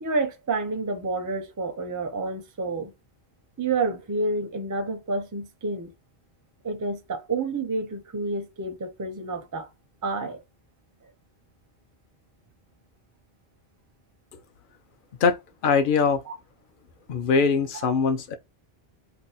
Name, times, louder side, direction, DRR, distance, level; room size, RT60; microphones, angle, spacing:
voice 1, 0.0-2.9 3.6-5.9 6.6-9.7 10.0-10.4 16.3-16.4, right 3 dB, 25° right, 0.4 m, -29 dB
voice 2, 15.6-16.2 17.1-18.3, left 5 dB, 60° left, 0.7 m, -22 dB
2.6 x 2.2 x 4.0 m
omnidirectional pair, 1.1 m